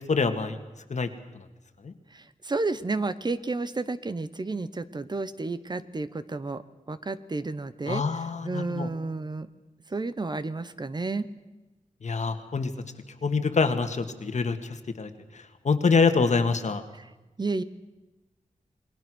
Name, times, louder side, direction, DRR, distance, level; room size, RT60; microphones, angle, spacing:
voice 1, 0.1-0.6 0.9-1.1 1.8-1.9 7.9-8.9 12.0-12.7 13.2-14.6 15.0-15.1 15.6-16.8, left 4 dB, 60° left, 7 dB, 1.8 m, -25 dB
voice 2, 2.1-9.5 9.9-11.3 16.9-17.1 17.4-17.6, right 3 dB, 35° right, 13 dB, 0.9 m, -31 dB
28.0 x 21.0 x 6.3 m, 1.1 s
wide cardioid pair, 135°, 13 cm